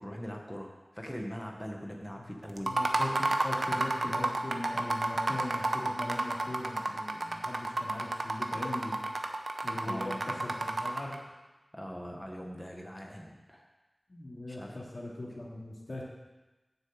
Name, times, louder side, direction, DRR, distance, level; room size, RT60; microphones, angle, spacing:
voice 1, 0.0-2.8 9.8-10.2 11.7-13.7 14.5-14.8, equal, 5° left, 1 dB, 1.3 m, -41 dB
voice 2, 2.6-9.0 9.6-11.2 14.1-16.0, left 1 dB, 70° left, -4 dB, 2.5 m, -40 dB
sound 1, 2.6-11.2, right 2 dB, 75° right, 0.8 m, -31 dB
7.5 x 6.3 x 7.9 m, 1.1 s
wide cardioid pair, 55°, 0 cm